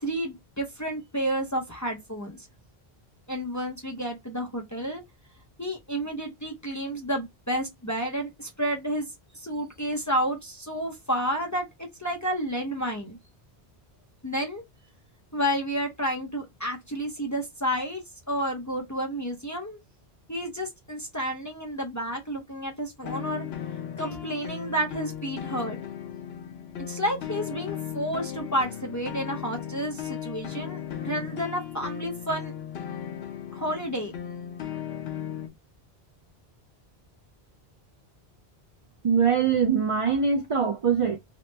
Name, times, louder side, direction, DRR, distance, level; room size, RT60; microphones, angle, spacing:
voice 1, 0.0-2.5 3.3-5.0 5.6-9.1 9.3-13.2 14.2-14.6 15.3-18.0 18.3-19.8 20.3-23.4 24.0-25.8 26.9-32.5 33.5-34.1, equal, 25° left, 0.5 m, -30 dB
sound 1, 23.0-35.5, left 9 dB, 75° left, 0.9 m, -36 dB
voice 2, 39.0-41.2, right 6 dB, 55° right, 0.4 m, -23 dB
3.0 x 2.0 x 3.1 m
omnidirectional pair, 1.1 m